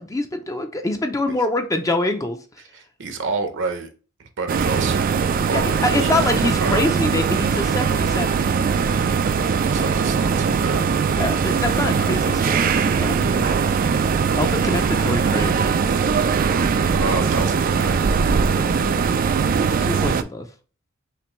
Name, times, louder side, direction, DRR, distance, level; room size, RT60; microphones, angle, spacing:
voice 1, 0.0-2.4 5.5-8.4 11.2-13.6 14.4-15.5 18.5-19.0 19.8-20.5, left 2 dB, 15° left, 0.5 m, -25 dB
voice 2, 2.7-3.9 4.2-5.1 5.5-6.8 9.6-10.9 15.0-15.2 16.9-18.0, right 3 dB, 60° right, 0.8 m, -29 dB
sound 1, 4.5-20.2, right 6 dB, 40° right, 0.3 m, -20 dB
5.8 x 2.6 x 3.1 m
head